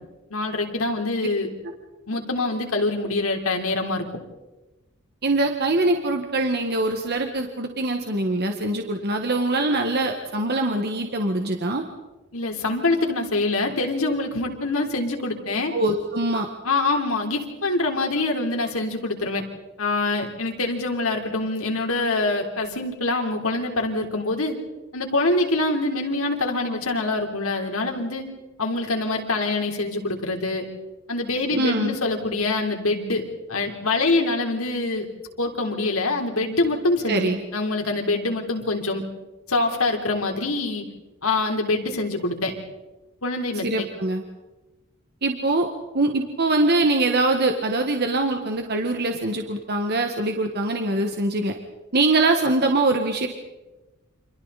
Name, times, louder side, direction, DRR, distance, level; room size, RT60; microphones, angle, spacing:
voice 1, 0.3-1.5 2.1-4.1 12.3-15.7 16.6-19.4 19.8-24.6 24.9-28.2 28.6-30.7 31.1-33.2 33.5-35.1 35.4-39.0 39.5-40.8 41.2-42.5 43.2-43.9, left 2 dB, 85° left, 2 dB, 3.8 m, -25 dB
voice 2, 5.2-11.8 15.7-16.5 31.5-31.9 37.1-37.4 43.6-44.2 45.2-45.7 45.9-51.5 51.9-53.3, right 2 dB, 50° right, 4 dB, 1.7 m, -23 dB
30.0 x 26.5 x 4.2 m, 1.1 s
head